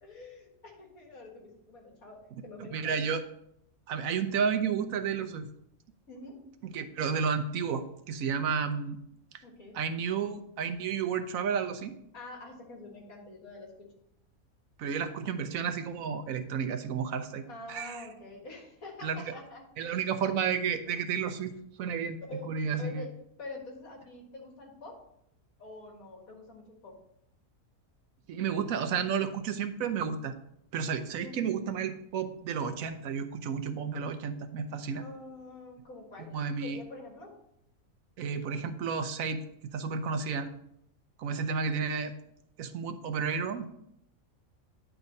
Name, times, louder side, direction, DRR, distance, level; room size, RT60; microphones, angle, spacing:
voice 1, 0.0-3.0 6.1-6.4 9.4-9.9 12.1-13.9 17.5-19.7 20.9-21.0 22.3-25.1 25.6-27.0 31.1-31.5 35.0-36.3 36.6-37.4, left 2 dB, 80° left, -1 dB, 2.2 m, -46 dB
voice 2, 2.6-3.2 3.9-5.5 6.7-9.0 9.7-12.0 14.8-17.4 17.7-18.0 19.0-19.2 19.8-21.5 21.8-22.2 22.5-23.1 28.3-30.3 30.7-35.0 36.2-36.8 38.2-40.5 41.2-42.1 42.6-43.7, right 6 dB, 75° right, 8 dB, 1.1 m, -32 dB
10.0 x 3.5 x 5.2 m, 0.76 s
omnidirectional pair, 1.5 m